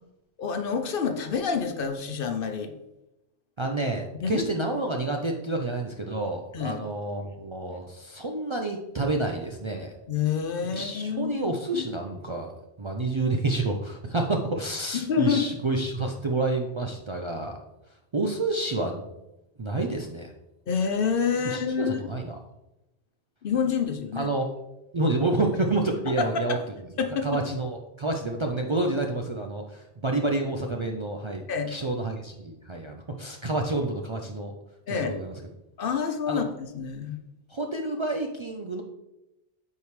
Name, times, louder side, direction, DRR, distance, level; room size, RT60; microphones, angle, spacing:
voice 1, 0.4-2.7 4.1-4.5 6.5-6.8 10.1-11.8 14.9-15.4 20.7-22.0 23.4-24.3 26.2-26.6 27.0-27.4 31.5-31.7 34.9-35.2 35.8-37.2, left 6 dB, 60° left, 6 dB, 0.9 m, -28 dB
voice 2, 3.6-9.9 10.7-12.5 12.8-17.6 18.1-19.0 19.6-20.3 21.4-22.4 24.1-24.5 24.9-26.6 27.2-34.5 34.9-35.3 36.3-36.4 37.5-38.8, right 2 dB, 40° right, 2 dB, 0.4 m, -29 dB
8.2 x 4.6 x 3.2 m, 0.93 s
omnidirectional pair, 1.1 m